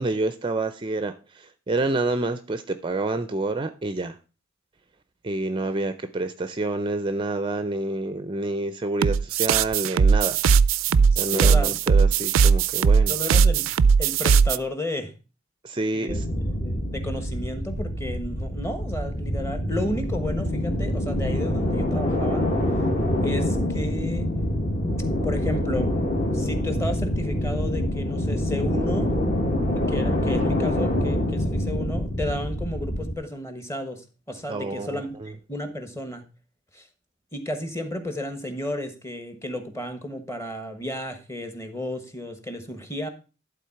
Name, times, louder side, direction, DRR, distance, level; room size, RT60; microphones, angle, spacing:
voice 1, 0.0-4.2 5.2-10.4 11.2-13.1 15.6-16.2 34.5-35.3, right 2 dB, 25° right, 11 dB, 0.4 m, -28 dB
sound 1, 9.0-14.6, right 6 dB, 90° right, 0.4 m, -19 dB
voice 2, 10.9-11.7 13.1-13.7 14.0-15.1 15.9-22.4 23.2-24.3 25.2-25.9 26.3-29.1 29.9-36.2 36.7-36.9 37.3-43.1, left 1 dB, 15° left, 7 dB, 1.2 m, -33 dB
sound 2, 16.1-33.2, left 1 dB, 40° left, 1.5 m, -26 dB
11.5 x 3.9 x 5.7 m, 0.34 s
head